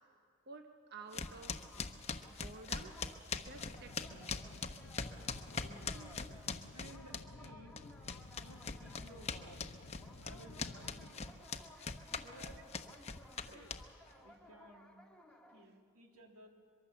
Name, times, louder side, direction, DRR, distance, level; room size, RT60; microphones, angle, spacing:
voice 1, 0.0-2.0 2.2-3.0 3.3-4.5 11.7-11.9 12.4-12.5 14.1-14.5 15.6-15.8, right 3 dB, 45° right, 6 dB, 0.8 m, -55 dB
sound 1, 1.0-15.7, left 1 dB, 5° left, 1.0 m, -60 dB
sound 2, 1.1-7.5 7.8-14.1, left 5 dB, 30° left, 0.9 m, -42 dB
sound 3, 3.5-11.1, left 2 dB, 65° left, 0.8 m, -54 dB
voice 2, 5.5-6.2 6.7-7.7 8.4-9.6 10.2-11.3 12.2-12.6 13.5-13.8 14.2-15.0 15.5-16.5, right 1 dB, 85° right, 2 dB, 2.7 m, -57 dB
23.5 x 23.0 x 7.1 m, 2.5 s
head